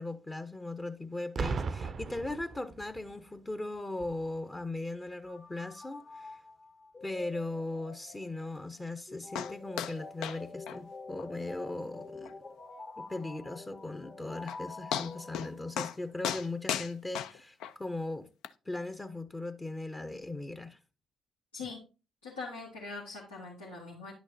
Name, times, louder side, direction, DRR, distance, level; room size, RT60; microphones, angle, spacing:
voice 1, 0.0-6.4 7.0-12.3 13.0-18.3 18.7-20.8, left 2 dB, 20° left, 0.7 m, -38 dB
Boom, 1.4-3.1 4.0-4.2, right 4 dB, 50° right, 0.5 m, -36 dB
sound 1, 5.3-16.0, left 3 dB, 45° left, 1.3 m, -47 dB
sound 2, 9.3-9.5 9.8-10.0 10.2-10.4 10.7-10.8 11.2-11.3 11.7-11.8 12.2-12.3 14.0-14.1 14.5-14.6 14.9-15.5 15.8-16.0 16.2-17.7 18.4-18.5, left 9 dB, 70° left, 0.4 m, -35 dB
voice 2, 22.2-24.1, left 4 dB, 90° left, 1.5 m, -42 dB
10.0 x 6.2 x 2.6 m
hypercardioid pair, 45°, 0 cm